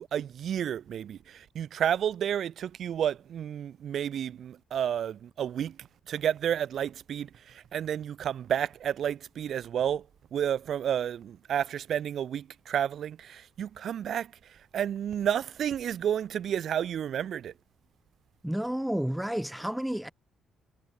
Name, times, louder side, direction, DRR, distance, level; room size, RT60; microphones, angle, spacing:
voice 1, 0.0-10.1 10.3-17.5, right 9 dB, 65° right, 2.7 m, -31 dB
voice 2, 18.4-20.1, right 1 dB, 5° right, 2.6 m, -31 dB
cardioid pair, 90°, 0 cm